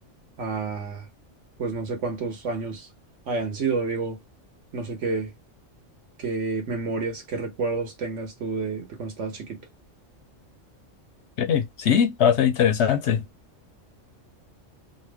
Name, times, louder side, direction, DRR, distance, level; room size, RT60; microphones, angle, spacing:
voice 1, 0.4-1.1 1.6-2.9 3.3-4.2 4.7-5.3 6.2-9.6, right 4 dB, 70° right, 1.4 m, -29 dB
voice 2, 11.4-13.2, left 8 dB, 65° left, 0.8 m, -21 dB
3.1 x 2.0 x 3.4 m
omnidirectional pair, 1.3 m